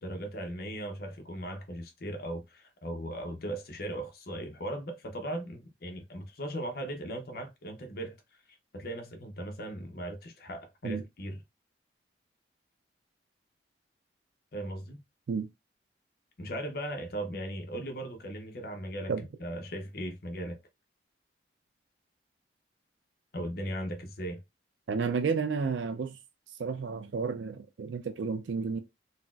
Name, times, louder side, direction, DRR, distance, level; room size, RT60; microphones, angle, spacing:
voice 1, 0.0-8.2 8.7-11.4 14.5-15.0 16.4-20.6 23.3-24.4, right 1 dB, 55° left, 0.7 m, -38 dB
voice 2, 24.9-26.2 26.6-28.8, right 5 dB, 80° right, 0.4 m, -31 dB
4.0 x 2.0 x 2.3 m
head